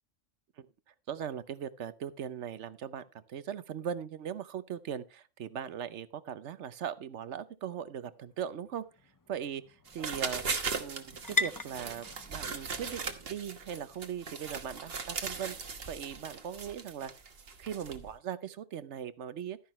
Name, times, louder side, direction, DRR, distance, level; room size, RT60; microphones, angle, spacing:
voice 1, 1.1-8.9 9.3-10.4 10.7-15.6 15.9-17.1 17.6-19.6, right 8 dB, 70° right, 15 dB, 1.0 m, -39 dB
sound 1, 7.8-15.6, left 3 dB, 30° left, 0.3 m, -41 dB
sound 2, 9.9-18.1, right 5 dB, 55° right, 1.4 m, -39 dB
13.0 x 10.5 x 3.0 m, 0.28 s
omnidirectional pair, 1.3 m